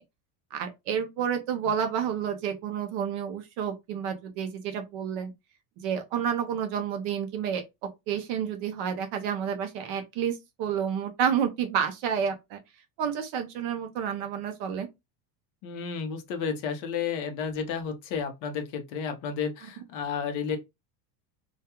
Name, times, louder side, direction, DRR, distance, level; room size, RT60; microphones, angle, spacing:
voice 1, 0.5-5.3 5.8-12.6 13.0-14.9, right 8 dB, 45° right, 0.4 m, -30 dB
voice 2, 15.6-20.6, left 6 dB, 50° left, 0.6 m, -32 dB
2.2 x 2.2 x 2.8 m
cardioid pair, 170°, 47 cm